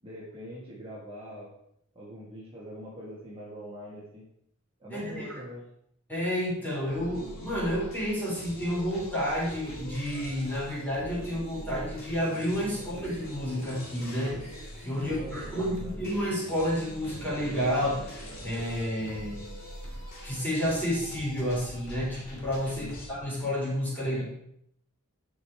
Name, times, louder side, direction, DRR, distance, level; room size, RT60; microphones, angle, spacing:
voice 1, 0.0-1.5 2.0-4.2 4.8-5.6 15.0-15.9 22.7-22.9, equal, 25° right, -6 dB, 1.7 m, -43 dB
voice 2, 4.9-5.4 6.1-14.4 14.8-18.1 18.4-19.4 20.2-24.2, equal, 10° left, -7 dB, 3.8 m, -30 dB
sound 1, 6.9-23.1, equal, 45° left, 2.6 m, -43 dB
11.0 x 5.0 x 4.5 m, 0.73 s
head